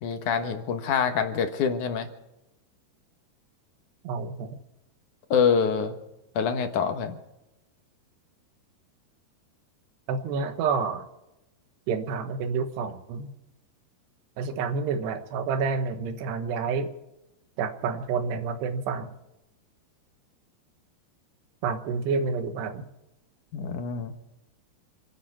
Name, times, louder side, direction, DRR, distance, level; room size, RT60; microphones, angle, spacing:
voice 1, 0.0-2.1 5.3-6.0 6.4-7.2 23.5-24.1, left 6 dB, 60° left, 7 dB, 2.4 m, -25 dB
voice 2, 4.0-4.5 10.1-11.1 11.9-13.3 14.4-16.9 17.6-19.1 21.6-22.9, right 5 dB, 90° right, 8 dB, 3.4 m, -29 dB
28.5 x 10.5 x 4.6 m, 0.93 s
omnidirectional pair, 4.6 m